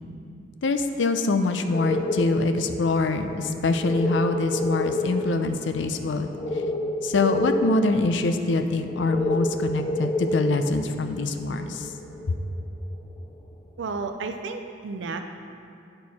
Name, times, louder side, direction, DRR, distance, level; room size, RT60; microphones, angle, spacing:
voice 1, 0.6-6.3 7.0-11.9 12.3-12.4, left 3 dB, 70° left, 7 dB, 0.5 m, -24 dB
sound 1, 1.7-12.7 13.2-13.3, left 1 dB, 20° left, 0.5 m, -30 dB
voice 2, 13.8-15.2, right 4 dB, 70° right, 6 dB, 0.4 m, -32 dB
10.5 x 4.5 x 4.1 m, 2.5 s
head